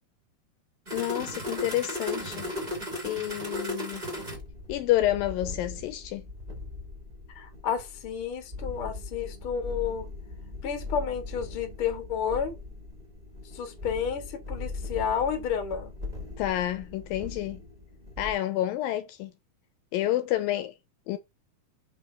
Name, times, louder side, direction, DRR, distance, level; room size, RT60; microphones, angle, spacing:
sound 1, 0.8-18.3, left 2 dB, 15° right, 1.8 m, -38 dB
voice 1, 0.9-2.5 3.0-4.0 4.7-6.3 16.4-17.6 18.2-19.3 19.9-20.7 21.1-21.2, left 14 dB, 80° left, 2.3 m, -29 dB
voice 2, 7.3-10.1 10.6-12.6 13.5-15.9, left 7 dB, 50° left, 1.9 m, -31 dB
5.7 x 4.1 x 5.0 m
omnidirectional pair, 4.2 m